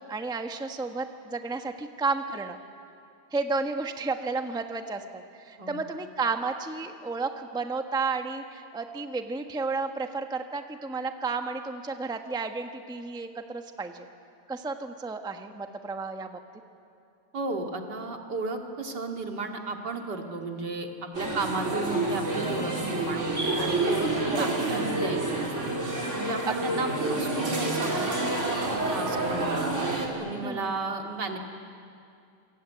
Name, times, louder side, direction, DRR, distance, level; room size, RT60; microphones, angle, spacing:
voice 1, 0.1-2.6 3.3-14.1 14.5-16.4 21.3-21.4 24.3-24.4 26.5-26.8 30.4-30.7, right 4 dB, 5° right, 6 dB, 0.9 m, -32 dB
voice 2, 17.3-25.7 26.2-28.1 28.5-29.7 30.1-31.4, right 3 dB, 75° right, 2 dB, 2.9 m, -34 dB
sound 1, 21.1-30.1, right 2 dB, 40° right, 3.9 m, -28 dB
27.5 x 23.5 x 9.3 m, 2.5 s
omnidirectional pair, 1.9 m